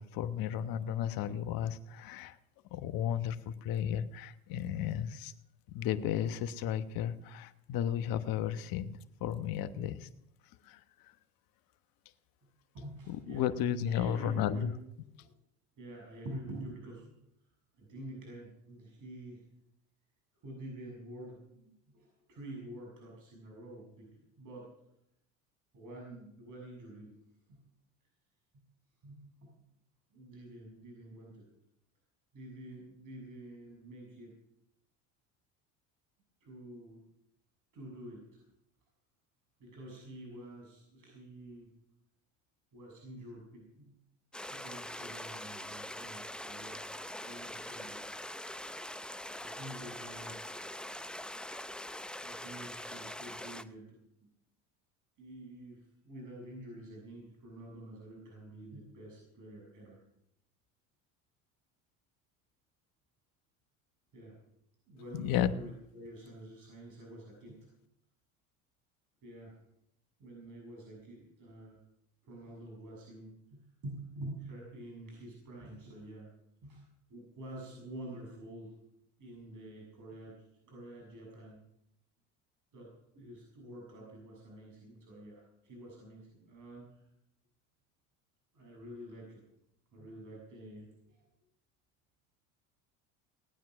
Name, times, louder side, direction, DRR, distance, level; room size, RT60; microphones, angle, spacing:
voice 1, 0.0-2.3 2.7-5.3 5.7-8.9 9.2-10.1 10.7-10.8 13.1-14.7 65.1-65.5, left 10 dB, 60° left, 12 dB, 1.2 m, -33 dB
voice 2, 12.7-13.5 13.8-14.7 15.2-15.3 15.8-17.1 17.7-19.5 20.4-24.7 25.7-27.1 27.5-27.6 28.5-28.6 29.0-29.5 30.1-31.5 32.3-34.4 36.4-37.1 37.7-38.4 39.6-41.7 42.7-43.9 44.4-46.8 47.2-48.2 48.7-48.9 49.4-50.4 52.2-54.3 55.2-60.0 64.1-64.4 64.9-67.6 69.2-69.5 70.2-71.8 72.2-76.3 76.6-78.7 79.2-81.6 82.7-87.0 88.5-89.4 89.9-91.2, right 1 dB, 50° right, -2 dB, 6.9 m, -48 dB
sound 1, 44.3-53.6, left 1 dB, ahead, 0.7 m, -43 dB
19.0 x 9.4 x 6.2 m, 0.79 s
supercardioid pair, 85°, 39 cm